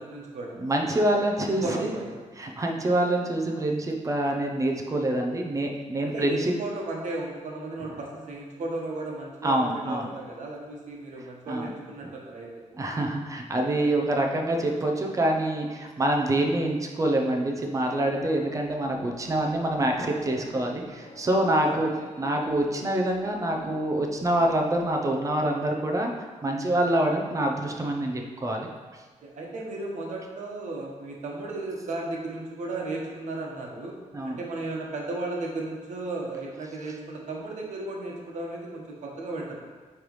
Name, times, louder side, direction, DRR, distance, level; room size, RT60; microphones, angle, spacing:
voice 1, 0.0-0.5 1.4-2.1 6.0-12.5 21.5-21.8 29.2-33.9 34.2-39.6, right 2 dB, 70° right, -2 dB, 1.2 m, -35 dB
voice 2, 0.6-1.9 2.4-6.5 7.9-8.0 9.4-10.1 11.5-11.7 12.0-12.1 12.7-21.9 22.2-26.1 26.4-28.7 34.1-34.4, right 1 dB, 25° right, 1 dB, 0.6 m, -26 dB
sound 1, 17.7-24.8, left 2 dB, 70° left, 0.6 m, -46 dB
9.1 x 3.3 x 3.1 m, 1.4 s
wide cardioid pair, 150°, 13 cm